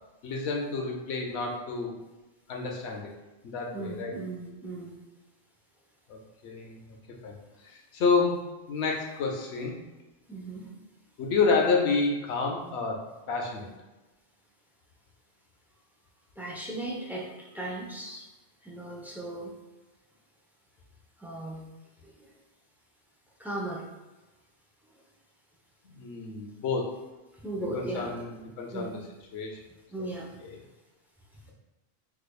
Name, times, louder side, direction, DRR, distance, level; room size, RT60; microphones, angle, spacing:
voice 1, 0.2-1.9 2.5-3.1 3.4-4.1 6.1-7.0 7.2-7.4 7.6-8.4 8.7-9.7 11.2-13.7 25.8-26.9 27.7-29.0 29.3-29.6 30.0-30.1 30.4-30.6, left 4 dB, 85° left, 1 dB, 0.9 m, -29 dB
voice 2, 3.7-5.0 10.3-10.7 16.4-17.3 17.5-18.2 18.6-19.5 21.2-21.7 23.4-23.8 27.4-28.1 28.7-28.9 29.9-30.3, right 2 dB, 5° right, -4 dB, 0.4 m, -36 dB
4.8 x 2.4 x 2.3 m, 1.1 s
omnidirectional pair, 1.1 m